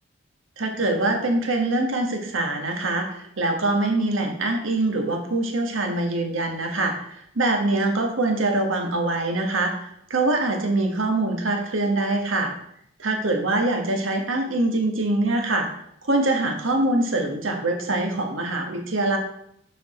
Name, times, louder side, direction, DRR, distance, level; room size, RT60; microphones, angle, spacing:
voice 1, 0.6-12.5 13.0-15.7 16.0-19.2, right 2 dB, 85° right, 3 dB, 1.2 m, -24 dB
7.1 x 4.7 x 4.1 m, 0.72 s
head